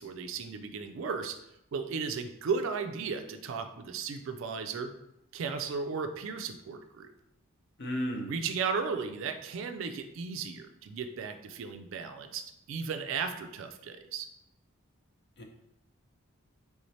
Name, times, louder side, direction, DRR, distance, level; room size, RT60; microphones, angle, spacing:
voice 1, 0.0-1.4 1.7-4.9 5.3-7.1 8.1-14.3, right 5 dB, 65° right, 7 dB, 0.3 m, -35 dB
voice 2, 7.8-8.3 15.4-15.5, equal, 50° left, 2 dB, 0.6 m, -33 dB
3.5 x 2.7 x 3.1 m, 0.82 s
head